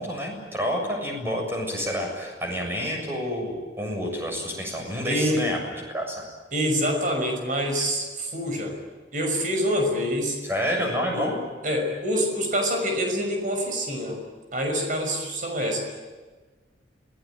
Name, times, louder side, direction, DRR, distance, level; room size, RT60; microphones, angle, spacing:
voice 1, 0.0-6.2 10.5-11.4, equal, 15° right, 1 dB, 7.2 m, -29 dB
voice 2, 5.0-5.4 6.5-8.8 9.1-10.4 11.1-11.3 11.6-14.2 14.5-15.8, equal, 45° right, 3 dB, 5.9 m, -26 dB
27.5 x 19.5 x 9.1 m, 1.4 s
head